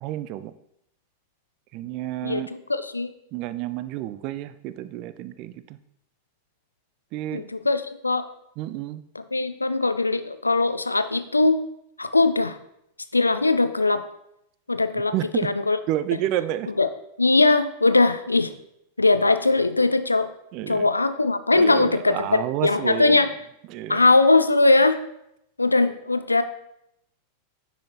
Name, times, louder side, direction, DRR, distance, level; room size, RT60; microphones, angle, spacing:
voice 1, 0.0-0.5 1.7-2.5 3.3-5.8 7.1-7.4 8.6-9.0 15.1-15.5 15.9-16.7 20.5-20.9 21.5-23.2 23.7-24.0, right 13 dB, 40° right, 14 dB, 0.3 m, -30 dB
voice 2, 2.2-3.1 7.3-8.3 9.3-11.6 12.0-12.6 13.1-14.0 14.7-15.8 16.8-16.9 17.2-18.5 19.0-20.3 20.7-23.3 23.9-25.0 25.6-26.4, left 3 dB, 80° left, 10 dB, 0.4 m, -20 dB
9.6 x 4.1 x 2.8 m, 0.78 s
figure-of-eight pair, 90°, 0 cm